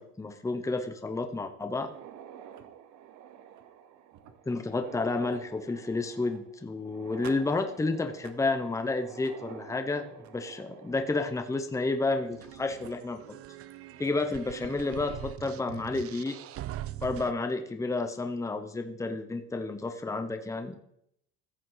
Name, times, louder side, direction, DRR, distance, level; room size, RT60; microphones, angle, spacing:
voice 1, 0.0-1.9 4.5-13.3 14.0-16.4 17.0-20.8, left 3 dB, 10° left, 7 dB, 1.0 m, -31 dB
sound 1, 1.7-12.5 12.8-12.9 13.7-13.8 14.3-14.4 15.7-16.0, right 9 dB, 65° right, 1.1 m, -49 dB
sound 2, 12.3-17.3, right 13 dB, 45° right, 0.6 m, -42 dB
14.5 x 7.6 x 4.0 m, 0.73 s
cardioid pair, 110°, 32 cm